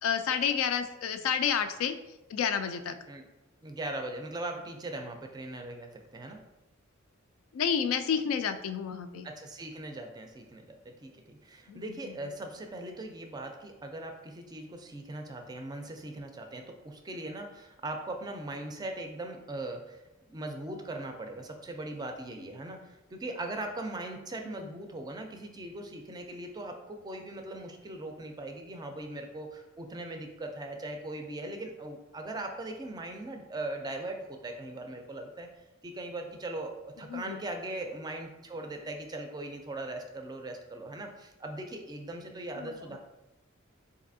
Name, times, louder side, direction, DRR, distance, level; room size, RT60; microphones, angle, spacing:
voice 1, 0.0-1.9 2.3-3.0 7.5-9.3 11.7-12.1 24.6-24.7 37.1-37.4 42.6-43.0, left 7 dB, 80° left, 9 dB, 0.3 m, -30 dB
voice 2, 3.6-6.4 9.2-10.6 11.0-20.0 20.3-35.5 35.8-43.0, right 2 dB, 20° right, 4 dB, 0.4 m, -40 dB
4.0 x 2.6 x 2.6 m, 0.97 s
head